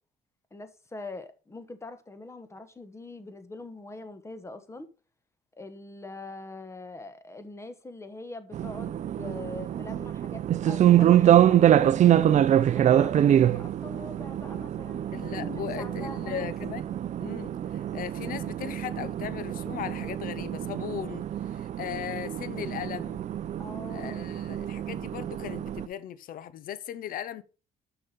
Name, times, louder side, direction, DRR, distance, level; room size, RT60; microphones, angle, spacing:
voice 1, 0.5-4.9 5.5-12.4 12.7-15.0 15.4-16.5 23.6-24.8, left 2 dB, 15° left, 1.1 m, -43 dB
sound 1, 8.5-25.9, right 11 dB, 45° right, 0.5 m, -25 dB
voice 2, 15.1-16.8 17.2-23.2 23.9-27.4, left 11 dB, 55° left, 0.7 m, -38 dB
6.3 x 5.9 x 5.2 m
cardioid pair, 110°, 17 cm